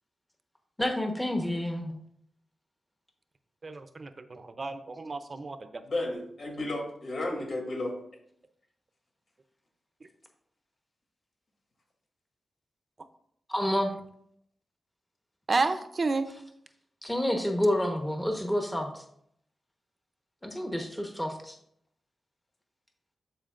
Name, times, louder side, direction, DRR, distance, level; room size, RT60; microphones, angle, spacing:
voice 1, 0.8-1.9 13.5-13.9 17.0-19.0 20.4-21.5, left 1 dB, 5° left, 3 dB, 1.1 m, -29 dB
voice 2, 3.6-5.6 15.5-16.3, right 3 dB, 45° right, 9 dB, 0.6 m, -30 dB
voice 3, 5.8-7.9, left 2 dB, 65° left, -1 dB, 2.9 m, -33 dB
12.5 x 4.5 x 2.5 m, 0.69 s
cardioid pair, 70°, 0 cm